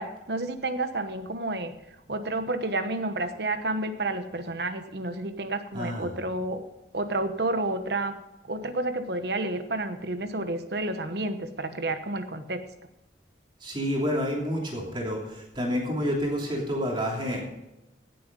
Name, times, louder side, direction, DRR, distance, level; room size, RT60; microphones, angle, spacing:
voice 1, 0.0-1.7 2.1-6.6 6.9-8.1 8.5-12.6, right 2 dB, 65° right, 8 dB, 1.1 m, -30 dB
voice 2, 5.7-6.1 13.6-17.4, equal, 25° right, -2 dB, 3.0 m, -29 dB
17.0 x 7.6 x 5.3 m, 0.95 s
head